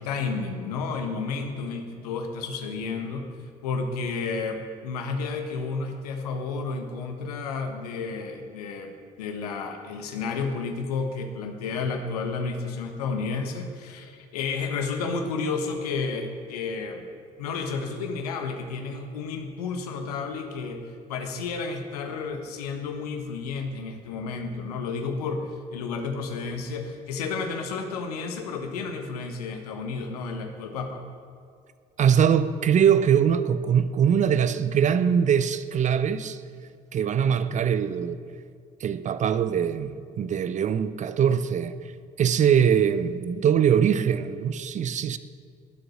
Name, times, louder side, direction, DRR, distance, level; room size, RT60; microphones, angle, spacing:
voice 1, 0.0-3.2 3.6-17.1 17.4-31.0, left 4 dB, 70° left, 1.4 m, -31 dB
voice 2, 32.0-36.4 36.9-38.2 38.8-41.7 42.2-45.2, right 8 dB, 35° right, 0.7 m, -22 dB
21.0 x 7.8 x 6.4 m
figure-of-eight pair, 50°, 20 cm